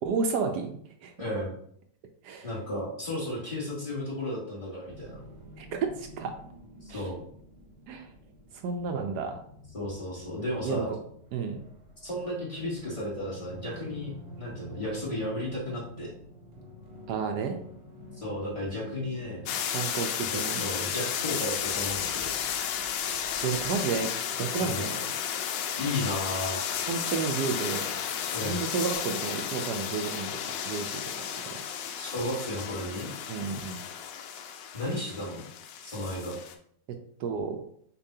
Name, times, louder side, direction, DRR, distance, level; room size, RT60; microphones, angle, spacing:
voice 1, 0.0-1.1 2.2-2.5 5.6-6.3 6.9-7.1 7.9-8.1 8.6-9.4 10.6-10.8 11.3-11.6 17.1-17.6 19.7-20.6 23.0-23.2 23.4-24.1 24.4-25.2 26.9-27.9 28.4-31.1 31.4-31.6 33.3-33.8 36.9-37.6, right 5 dB, 70° right, 5 dB, 1.1 m, -31 dB
voice 2, 1.2-1.6 2.4-5.2 6.8-7.2 9.7-10.9 12.0-16.1 18.2-19.5 20.3-22.3 24.6-24.8 25.8-26.6 28.3-28.6 32.0-33.1 34.7-35.4 35.8-36.4, left 1 dB, 20° left, -6 dB, 1.5 m, -34 dB
sound 1, 4.9-24.0, equal, 40° right, 1.0 m, -49 dB
sound 2, 19.5-36.5, left 8 dB, 85° left, 1.3 m, -33 dB
6.8 x 2.6 x 2.7 m, 0.64 s
omnidirectional pair, 1.9 m